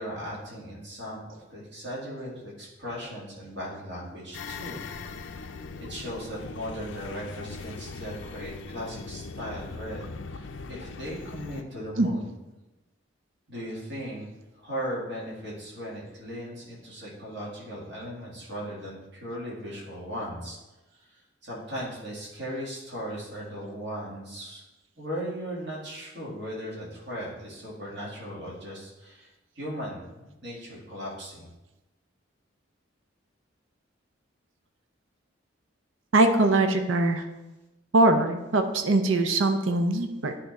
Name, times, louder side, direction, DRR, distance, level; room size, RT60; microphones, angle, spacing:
voice 1, 0.0-4.8 5.9-12.3 13.5-14.3 14.6-20.6 21.4-24.6 25.0-29.3 29.5-31.5, equal, 60° right, -6 dB, 2.3 m, -37 dB
sound 1, 4.3-11.6, left 4 dB, 70° left, 0.4 m, -40 dB
voice 2, 36.1-37.2 37.9-40.3, right 2 dB, 75° right, 7 dB, 0.6 m, -22 dB
10.0 x 3.8 x 4.1 m, 1.0 s
head